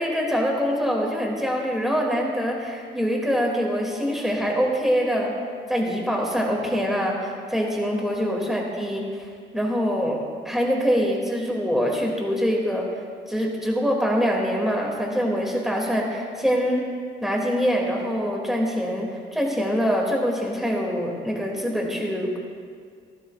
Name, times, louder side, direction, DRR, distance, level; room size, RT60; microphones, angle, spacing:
voice 1, 0.0-5.3 5.7-9.3 9.5-12.8 13.3-16.8 17.2-22.4, equal, ahead, -1 dB, 2.5 m, -24 dB
16.0 x 13.0 x 2.5 m, 2.1 s
cardioid pair, 90°, 20 cm